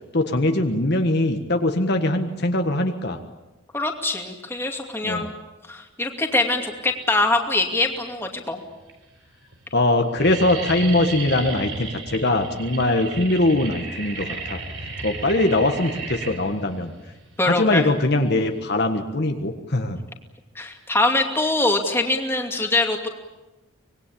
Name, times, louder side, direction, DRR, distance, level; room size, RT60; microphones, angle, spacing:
voice 1, 0.1-3.2 5.0-5.3 9.7-14.6 15.0-16.9 17.4-20.0, left 2 dB, 55° left, 5 dB, 1.5 m, -22 dB
voice 2, 3.7-5.3 5.7-8.6 17.4-17.8 20.5-23.1, left 2 dB, 10° left, 2 dB, 2.5 m, -23 dB
sound 1, 7.6-8.1 8.8-8.9 9.2-9.6 9.8-18.7, right 3 dB, 70° right, 4.1 m, -34 dB
25.0 x 20.5 x 8.6 m, 1.1 s
head